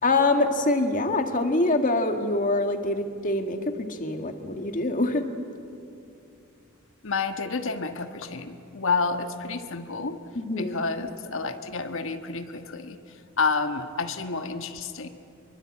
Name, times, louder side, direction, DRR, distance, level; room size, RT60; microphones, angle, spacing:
voice 1, 0.0-5.3 10.4-10.8, left 2 dB, 35° left, 6 dB, 1.9 m, -25 dB
voice 2, 7.0-10.2 10.6-13.0 13.4-15.1, left 4 dB, 60° left, 7 dB, 1.4 m, -29 dB
26.0 x 23.0 x 8.6 m, 2.5 s
head